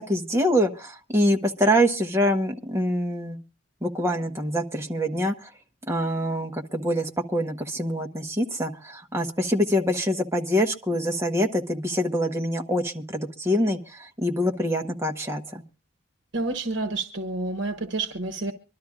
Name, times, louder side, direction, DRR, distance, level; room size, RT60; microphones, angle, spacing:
voice 1, 0.0-3.4 3.8-5.5 5.9-15.6, equal, 15° right, 3 dB, 1.2 m, -25 dB
voice 2, 16.3-18.5, right 2 dB, 65° right, 5 dB, 1.2 m, -29 dB
24.5 x 12.5 x 2.5 m, 0.32 s
head